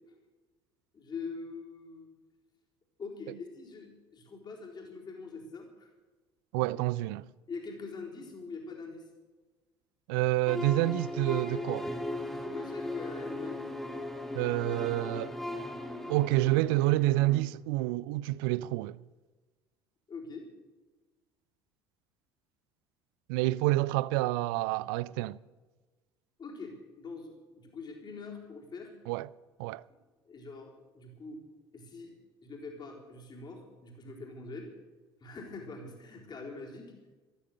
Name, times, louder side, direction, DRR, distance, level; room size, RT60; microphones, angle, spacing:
voice 1, 0.9-2.1 3.0-5.9 7.5-9.0 12.2-13.6 20.1-20.5 26.4-28.9 29.9-30.0 30.3-31.4 31.7-32.1 32.4-34.7 35.2-36.9, left 4 dB, 35° left, 4.1 m, -43 dB
voice 2, 6.5-7.3 10.1-11.9 14.3-15.4 16.1-19.0 23.3-25.4 29.1-29.3 29.6-29.8, right 18 dB, 60° right, 0.4 m, -28 dB
sound 1, 10.5-17.4, left 1 dB, 5° left, 2.4 m, -37 dB
14.5 x 13.5 x 6.6 m
figure-of-eight pair, 60°, 13 cm